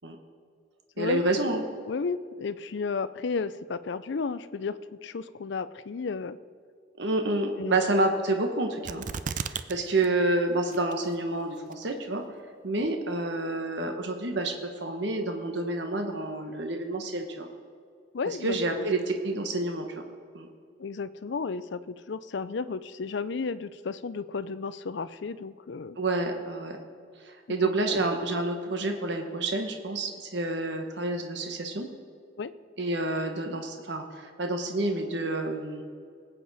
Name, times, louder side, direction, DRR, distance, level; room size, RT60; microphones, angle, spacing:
voice 1, 1.0-1.6 7.0-9.0 9.4-12.2 12.6-17.5 18.2-19.9 20.3-20.5 26.0-26.8 27.2-31.9 32.8-35.8, right 2 dB, 60° right, 4 dB, 1.0 m, -29 dB
voice 2, 1.9-6.4 7.6-7.8 12.8-12.9 18.1-18.9 20.8-26.0 27.5-27.6 27.9-28.4 32.4-32.5, left 4 dB, 65° left, 15 dB, 0.5 m, -33 dB
sound 1, 8.9-9.7 10.0-10.1 10.7-11.2 11.7-11.8, right 6 dB, 40° right, 0.4 m, -33 dB
19.5 x 8.6 x 4.1 m, 2.2 s
head